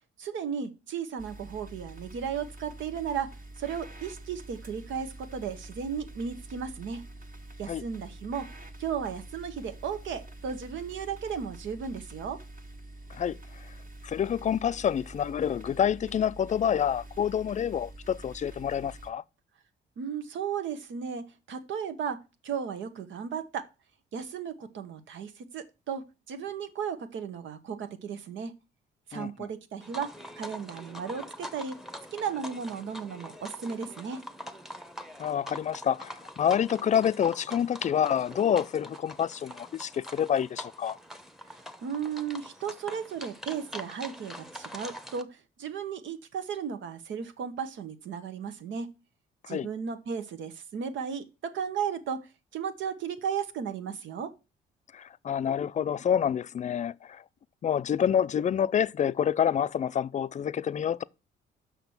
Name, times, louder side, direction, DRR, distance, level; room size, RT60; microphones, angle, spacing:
voice 1, 0.2-7.0 7.6-8.5 8.8-12.4 20.0-23.7 24.1-28.5 29.1-31.8 32.1-34.2 41.8-48.9 49.5-54.3, right 7 dB, 70° right, 1.1 m, -35 dB
sound 1, 1.2-19.1, right 1 dB, 45° right, 1.7 m, -46 dB
voice 2, 13.1-13.7 14.0-19.2 29.1-29.3 35.2-41.0 49.4-49.7 54.9-57.2 57.6-61.0, left 9 dB, 35° left, 0.4 m, -28 dB
sound 2, 29.8-45.2, equal, ahead, 0.9 m, -44 dB
6.0 x 5.9 x 7.1 m
cardioid pair, 90°, 20 cm